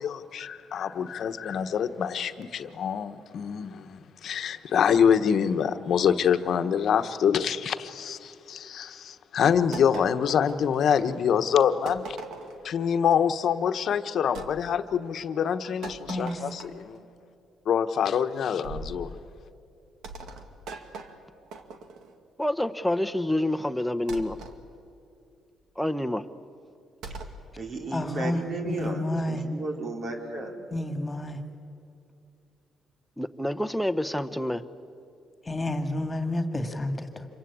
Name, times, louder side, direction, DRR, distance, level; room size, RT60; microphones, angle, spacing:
voice 1, 0.0-12.2 12.6-17.0 17.6-19.1, left 8 dB, 65° left, 9 dB, 1.2 m, -25 dB
sound 1, 9.7-11.1 11.9-12.7 14.3-14.5 15.8-16.9 18.6-19.1 20.0-22.1 24.1-24.6 27.0-27.4, right 3 dB, 80° right, 2.1 m, -41 dB
voice 2, 16.1-16.5 27.9-29.4 30.7-31.4 35.4-37.3, left 1 dB, 20° left, 6 dB, 2.2 m, -30 dB
voice 3, 22.4-24.4 25.8-26.3 33.2-34.6, left 1 dB, 5° left, 9 dB, 1.1 m, -27 dB
voice 4, 27.6-29.0 29.3-30.5, right 2 dB, 55° right, 2 dB, 4.3 m, -33 dB
27.0 x 23.0 x 8.6 m, 2.5 s
cardioid pair, 90°, 0 cm